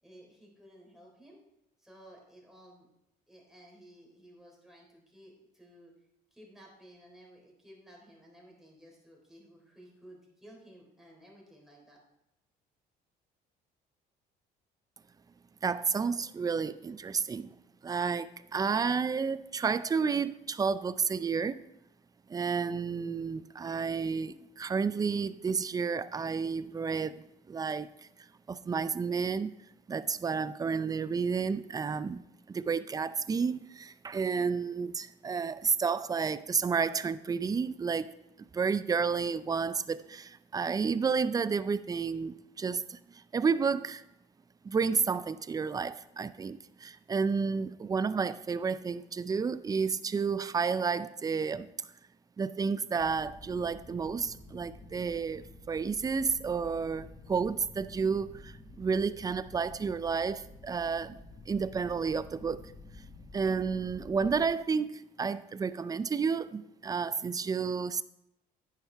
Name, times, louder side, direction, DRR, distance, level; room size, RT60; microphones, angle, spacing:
voice 1, 0.0-1.4 1.8-2.9 3.3-5.9 6.3-12.0, equal, ahead, 3.9 m, -55 dB
voice 2, 15.6-17.5 17.8-21.6 22.3-28.1 28.5-29.5 29.9-38.1 38.4-44.1 44.6-51.7 52.4-62.7 63.3-68.0, right 5 dB, 20° right, 0.4 m, -31 dB
sound 1, 52.9-64.5, left 2 dB, 35° left, 1.7 m, -50 dB
10.0 x 9.4 x 3.4 m
cardioid pair, 110°, 17 cm